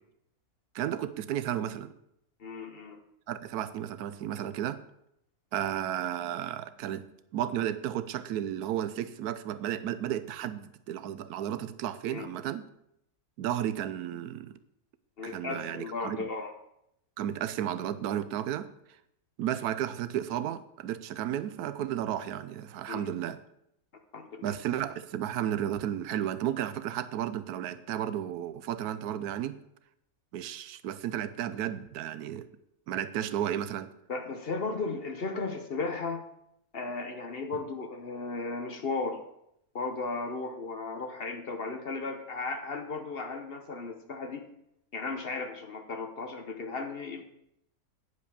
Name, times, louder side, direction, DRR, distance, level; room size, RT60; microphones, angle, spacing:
voice 1, 0.7-1.9 3.3-4.8 5.5-7.1 7.3-12.7 13.4-14.5 15.2-16.3 17.2-18.7 19.4-23.4 24.4-29.6 30.3-32.5 32.9-33.9, right 11 dB, 85° right, 14 dB, 1.1 m, -33 dB
voice 2, 2.4-3.0 12.1-12.3 15.2-16.5 22.9-23.1 24.1-24.6 34.1-36.2 36.7-39.2 39.7-44.4 44.9-47.3, left 3 dB, 45° left, 6 dB, 1.0 m, -35 dB
9.7 x 5.2 x 6.7 m, 0.78 s
omnidirectional pair, 1.6 m